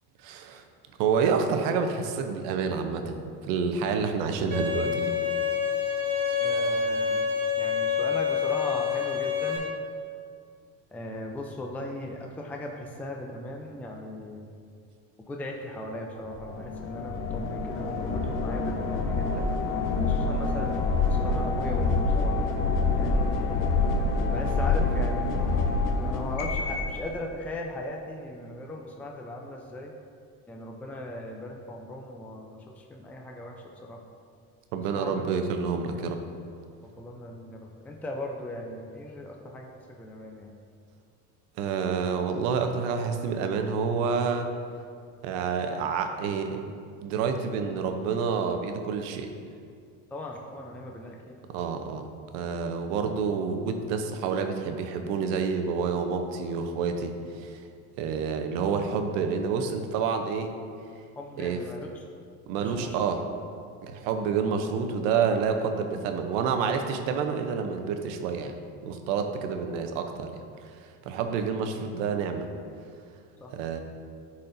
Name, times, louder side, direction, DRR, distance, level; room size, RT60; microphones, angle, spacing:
voice 1, 0.2-0.6 1.0-3.2 3.4-5.1 34.7-36.2 41.6-44.5 45.2-46.6 47.0-49.3 51.5-52.0 52.3-57.6 58.0-60.6 61.4-61.6 62.5-63.2 63.8-68.5 68.8-70.3 70.6-70.7 71.1-72.5 73.5-73.8, right 5 dB, 85° right, 6 dB, 0.7 m, -28 dB
Bowed string instrument, 4.5-9.6, left 6 dB, 25° right, 1.6 m, -27 dB
voice 2, 6.4-7.2 7.6-9.7 10.9-14.5 15.3-19.5 20.1-22.3 23.0-23.8 24.3-25.6 26.0-29.9 30.5-34.0 34.9-35.2 36.8-40.5 50.1-51.4 61.2-62.0 62.6-63.0 73.4-73.5, left 1 dB, 5° left, 0 dB, 0.4 m, -38 dB
sound 1, 16.4-27.0, left 3 dB, 60° left, 0.8 m, -26 dB
10.5 x 4.2 x 2.6 m, 2.2 s
supercardioid pair, 115°, 37 cm